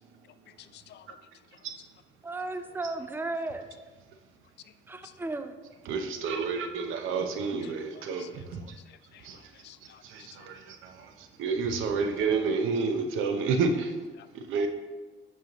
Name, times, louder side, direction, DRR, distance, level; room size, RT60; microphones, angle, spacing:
voice 1, 0.6-1.1 7.6-8.3 8.9-10.5 14.2-14.3, left 11 dB, 60° left, 12 dB, 0.4 m, -53 dB
voice 2, 2.2-3.7 4.9-5.5, right 2 dB, 10° right, 8 dB, 0.5 m, -34 dB
voice 3, 5.9-8.6 9.2-9.5 9.8-14.0 14.3-14.7, right 4 dB, 90° right, 5 dB, 0.7 m, -30 dB
7.9 x 5.5 x 3.0 m, 1.3 s
cardioid pair, 90°, 20 cm